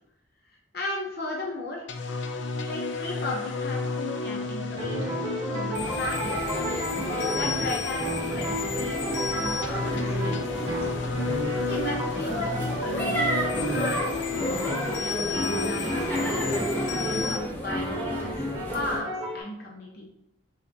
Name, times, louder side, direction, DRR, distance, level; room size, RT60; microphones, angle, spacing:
voice 1, 0.7-1.9 2.6-6.4 7.0-10.9 11.6-14.2 14.5-16.6 17.0-18.5 18.7-19.1 19.3-20.0, left 1 dB, 55° left, -2 dB, 0.8 m, -36 dB
sound 1, 1.9-17.4, left 4 dB, 70° left, 0.4 m, -32 dB
sound 2, 4.1-17.3 17.7-19.4, equal, 20° right, 1.0 m, -32 dB
sound 3, 5.7-19.0, equal, 10° left, 0.6 m, -33 dB
4.8 x 3.4 x 2.7 m, 0.81 s
head